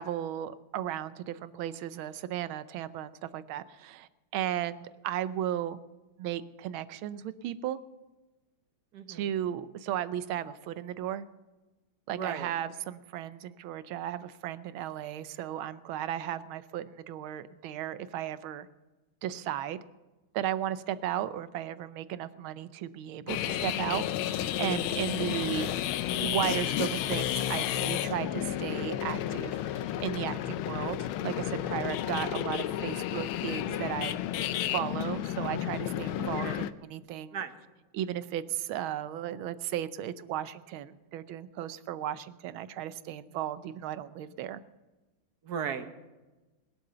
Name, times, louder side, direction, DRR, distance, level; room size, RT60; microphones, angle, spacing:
voice 1, 0.0-5.8 6.2-7.8 9.1-11.3 12.1-18.7 19.2-19.8 20.3-25.7 26.1-34.2 34.7-37.4 37.9-44.6, right 11 dB, 80° right, 14 dB, 1.5 m, -35 dB
voice 2, 8.9-9.3 12.1-12.5 36.2-36.7 37.3-37.6 45.4-45.9, right 7 dB, 55° right, 9 dB, 1.4 m, -36 dB
sound 1, 23.3-36.7, left 11 dB, 80° left, 1.4 m, -32 dB
21.0 x 7.9 x 6.8 m, 1.1 s
omnidirectional pair, 2.3 m